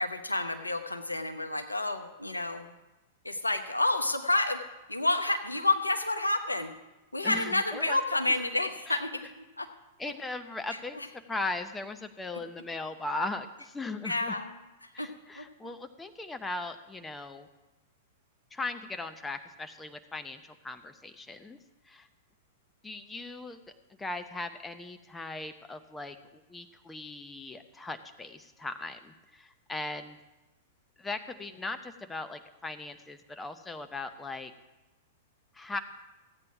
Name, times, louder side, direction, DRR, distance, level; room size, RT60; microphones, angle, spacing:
voice 1, 0.0-2.7 3.2-4.6 4.9-6.7 7.1-9.1 9.6-9.7 10.7-11.1 14.0-14.5 15.0-15.1 15.4-15.5, left 2 dB, 90° left, 6 dB, 1.0 m, -29 dB
voice 2, 7.2-8.0 8.9-9.0 10.0-14.3 14.9-17.5 18.5-21.6 21.9-22.1 22.8-23.6 24.0-30.2 31.0-34.5 35.5-35.8, left 2 dB, 10° left, 8 dB, 0.8 m, -38 dB
15.0 x 8.8 x 4.9 m, 1.0 s
figure-of-eight pair, 100°, 0 cm